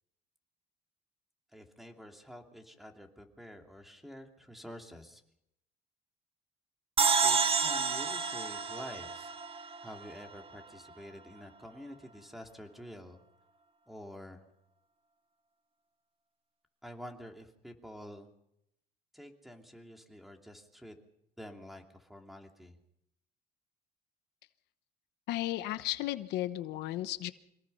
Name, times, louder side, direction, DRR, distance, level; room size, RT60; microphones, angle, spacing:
voice 1, 1.5-5.2 7.2-9.4 9.8-13.2 13.9-14.5 16.8-18.3 19.1-20.9 21.4-22.8, equal, ahead, 3 dB, 2.9 m, -48 dB
sound 1, 7.0-10.3, right 5 dB, 35° right, 1.3 m, -30 dB
voice 2, 25.3-27.3, left 15 dB, 85° left, 12 dB, 1.1 m, -34 dB
26.0 x 19.0 x 5.6 m, 0.79 s
cardioid pair, 110°, 17 cm